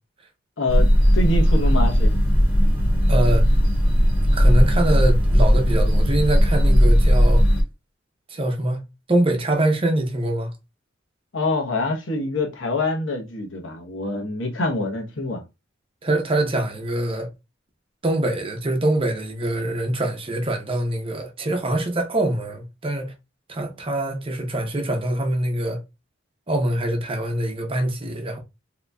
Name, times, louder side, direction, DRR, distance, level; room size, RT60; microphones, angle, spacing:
voice 1, 0.6-2.1 11.3-15.4, left 2 dB, 75° left, 1.0 m, -25 dB
sound 1, 0.7-7.6, equal, 5° right, 1.4 m, -17 dB
voice 2, 3.1-3.6 4.3-7.4 8.3-8.8 9.1-10.5 16.0-17.3 18.0-23.1 23.5-25.8 26.5-28.4, right 1 dB, 30° right, 0.7 m, -24 dB
3.8 x 2.9 x 2.2 m
head